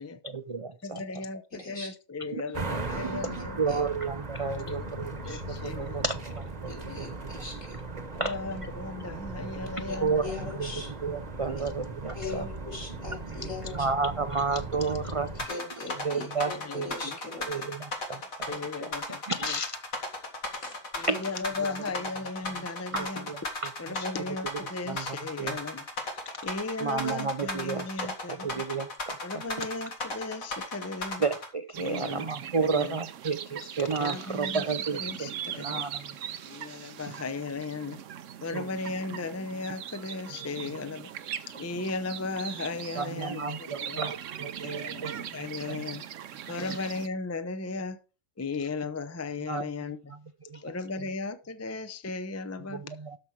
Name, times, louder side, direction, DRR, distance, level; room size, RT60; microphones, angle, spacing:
voice 1, 0.2-1.3 2.3-2.4 2.9-7.2 8.1-8.4 10.0-12.5 13.6-15.5 16.0-16.9 17.5-19.8 21.1-21.3 21.6-21.9 22.6-22.7 22.9-25.6 26.8-29.7 31.2-36.2 36.7-36.8 37.1-37.2 38.5-38.7 42.9-45.8 46.4-46.9 48.6-48.7 49.5-49.6 50.1-50.2 50.5-50.6 51.0-51.1 52.7-53.2, right 4 dB, 50° right, 0.4 m, -33 dB
voice 2, 0.8-3.6 4.6-4.8 5.2-6.0 6.7-7.1 8.2-10.5 12.2-12.5 16.4-17.2 18.5-19.2 19.5-19.6 21.0-23.3 23.8-25.8 26.4-28.6 29.2-31.2 31.8-32.3 32.6-33.0 34.0-34.6 34.9-35.8 36.4-38.0 38.4-41.1 41.6-44.0 44.6-46.0 46.5-48.0 48.4-50.1 50.6-52.8, left 3 dB, 20° left, 0.4 m, -36 dB
voice 3, 1.5-1.9 2.9-3.4 3.7-3.8 6.7-7.8 9.9-10.0 10.2-10.9 12.1-13.8 15.5-17.7 20.6-20.7, left 4 dB, 65° left, 4.2 m, -40 dB
sound 1, 2.5-15.5, right 2 dB, 30° right, 1.2 m, -38 dB
sound 2, 15.4-31.5, left 2 dB, 80° left, 2.7 m, -35 dB
sound 3, 31.7-47.1, right 9 dB, 70° right, 1.1 m, -40 dB
13.0 x 5.6 x 4.7 m
omnidirectional pair, 1.4 m